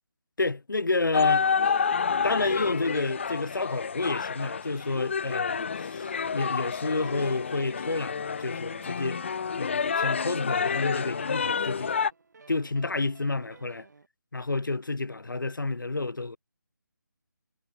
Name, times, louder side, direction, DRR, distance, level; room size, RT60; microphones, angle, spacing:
voice 1, 0.4-1.5 2.2-9.2 9.5-11.9 12.5-13.9 14.3-16.4, left 3 dB, 75° left, 4.2 m, -30 dB
sound 1, 1.1-12.1, left 6 dB, 35° left, 0.3 m, -29 dB
sound 2, 6.0-7.9 8.3-14.1, right 4 dB, 60° right, 7.5 m, -54 dB
figure-of-eight pair, 155°, 11 cm